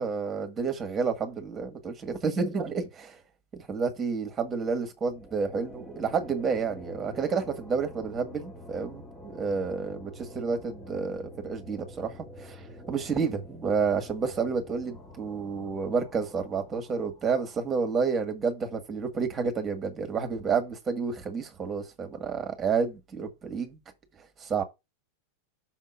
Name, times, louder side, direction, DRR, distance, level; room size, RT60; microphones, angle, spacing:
voice 1, 0.0-3.2 3.7-23.8 24.4-24.6, right 5 dB, 20° right, 1.8 m, -30 dB
sound 1, 5.0-18.2, left 1 dB, 15° left, 2.0 m, -47 dB
6.3 x 3.6 x 6.0 m
figure-of-eight pair, 90°, 0 cm